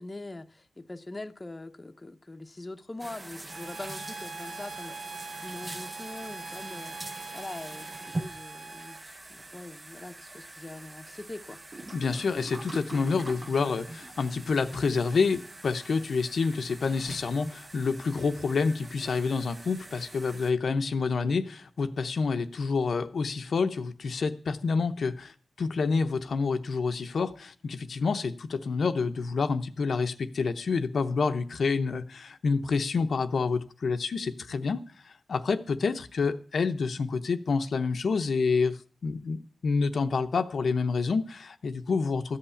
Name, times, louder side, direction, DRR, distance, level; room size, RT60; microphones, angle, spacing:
voice 1, 0.0-11.6, left 2 dB, 20° left, 0.8 m, -43 dB
sound 1, 3.0-20.5, right 2 dB, 25° right, 0.5 m, -43 dB
Bowed string instrument, 3.5-9.1, right 4 dB, 50° right, 1.5 m, -43 dB
voice 2, 11.9-42.4, left 4 dB, 60° left, 0.7 m, -28 dB
14.0 x 5.7 x 8.4 m
wide cardioid pair, 115°, 0 cm